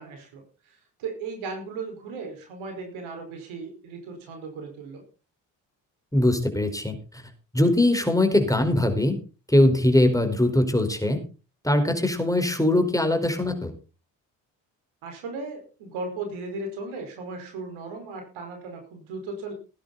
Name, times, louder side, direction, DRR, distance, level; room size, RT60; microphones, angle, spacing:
voice 1, 0.0-5.0 15.0-19.5, right 3 dB, 75° right, 4 dB, 5.1 m, -36 dB
voice 2, 6.1-6.9 7.5-9.2 9.5-11.2 11.6-13.7, left 1 dB, 5° left, 6 dB, 4.7 m, -21 dB
18.0 x 10.5 x 4.2 m, 0.34 s
hypercardioid pair, 50°, 48 cm